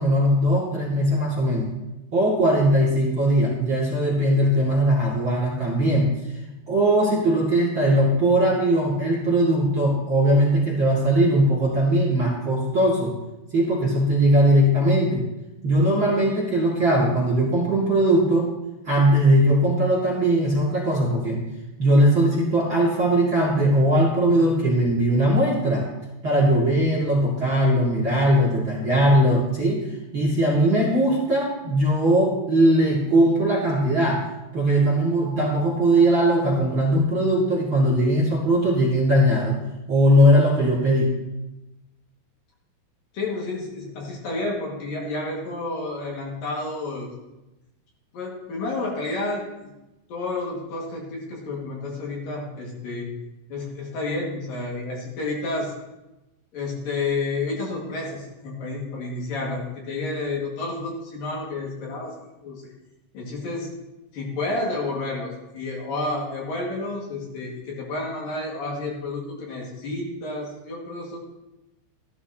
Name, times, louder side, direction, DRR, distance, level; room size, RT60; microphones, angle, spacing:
voice 1, 0.0-1.7 2.1-6.1 6.7-13.1 13.5-15.3 15.6-18.5 18.8-21.4 21.8-25.9 26.2-29.8 30.1-34.2 34.5-39.6 39.9-41.1, right 1 dB, 35° right, -5 dB, 2.6 m, -20 dB
voice 2, 43.1-47.1 48.1-49.7 50.1-53.1 53.5-55.7 56.5-62.6 63.1-63.7 64.1-71.2, left 2 dB, 60° left, -3 dB, 3.5 m, -30 dB
14.5 x 12.5 x 3.0 m, 0.98 s
omnidirectional pair, 4.9 m